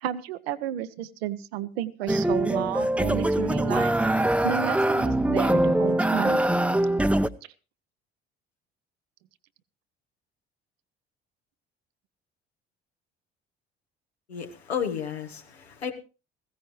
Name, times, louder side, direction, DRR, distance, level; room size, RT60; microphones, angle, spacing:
voice 1, 0.0-4.0 4.4-6.4, right 11 dB, 75° right, 13 dB, 0.9 m, -32 dB
sound 1, 2.1-7.3, right 1 dB, 5° right, 0.7 m, -23 dB
voice 2, 14.3-15.9, left 7 dB, 85° left, 5 dB, 1.5 m, -32 dB
15.5 x 15.5 x 3.2 m, 0.31 s
figure-of-eight pair, 55°, 31 cm